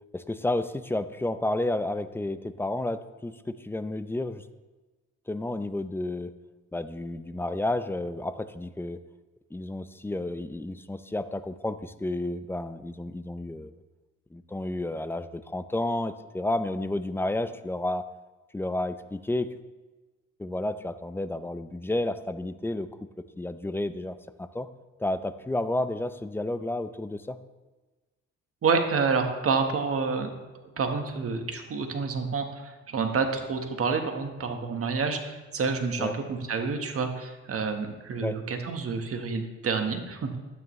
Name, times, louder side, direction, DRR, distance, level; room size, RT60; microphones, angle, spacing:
voice 1, 0.1-4.4 5.3-6.3 6.7-9.0 9.5-13.7 14.3-18.0 18.5-19.5 20.4-24.7 25.0-27.4 36.0-36.1 38.2-38.4, left 1 dB, 10° left, 12 dB, 0.5 m, -31 dB
voice 2, 28.6-30.3 30.8-40.4, right 5 dB, 50° right, 5 dB, 1.4 m, -28 dB
12.0 x 9.4 x 3.2 m, 1.2 s
cardioid pair, 90°, 30 cm